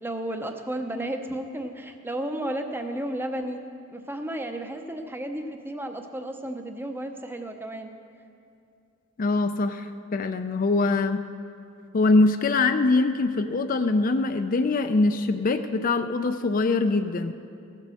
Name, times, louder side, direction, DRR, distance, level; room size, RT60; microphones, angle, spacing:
voice 1, 0.0-3.6 3.9-7.9, right 1 dB, 10° right, 5 dB, 0.6 m, -33 dB
voice 2, 9.2-9.9 10.1-11.2 11.9-17.3, left 3 dB, 40° left, 9 dB, 0.4 m, -23 dB
16.0 x 7.5 x 6.2 m, 2.5 s
head